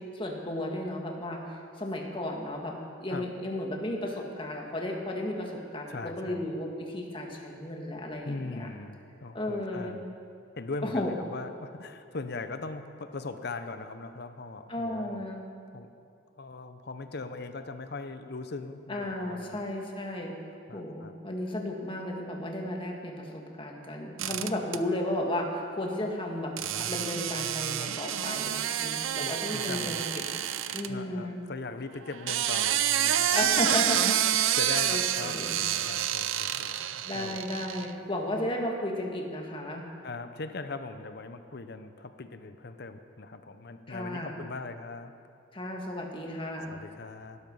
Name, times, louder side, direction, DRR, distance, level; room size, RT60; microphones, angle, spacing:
voice 1, 0.0-8.7 9.3-10.0 10.8-11.1 14.7-15.4 18.9-20.3 20.7-30.2 30.7-31.4 33.3-34.2 34.9-35.6 37.1-39.9 43.9-44.4 45.5-46.8, left 1 dB, 25° left, 1 dB, 1.8 m, -34 dB
voice 2, 5.9-6.4 8.2-10.0 10.6-15.2 15.7-15.9 16.3-19.6 20.7-21.1 29.2-30.1 30.9-33.6 34.3-36.8 37.1-37.4 40.0-45.1 46.7-47.4, left 3 dB, 50° left, 9 dB, 0.8 m, -40 dB
sound 1, 24.2-24.8 26.6-30.9 32.1-37.9, right 11 dB, 75° right, 0.6 m, -28 dB
17.0 x 12.5 x 5.5 m, 2.5 s
head